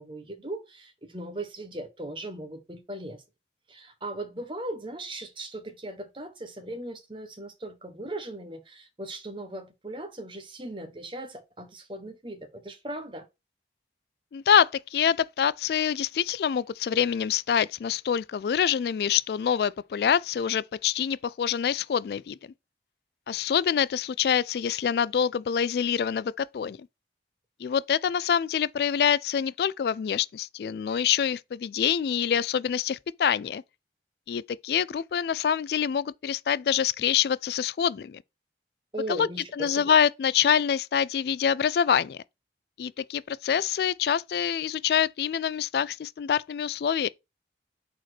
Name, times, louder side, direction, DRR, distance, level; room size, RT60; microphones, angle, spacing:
voice 1, 0.0-3.2 3.7-13.3 38.9-39.9, right 1 dB, 30° right, 1.1 m, -38 dB
voice 2, 14.3-22.4 23.3-26.8 27.6-33.6 34.3-38.2 39.1-39.3 39.5-42.2 42.8-47.1, left 8 dB, 65° left, 0.3 m, -26 dB
5.0 x 4.3 x 5.8 m
head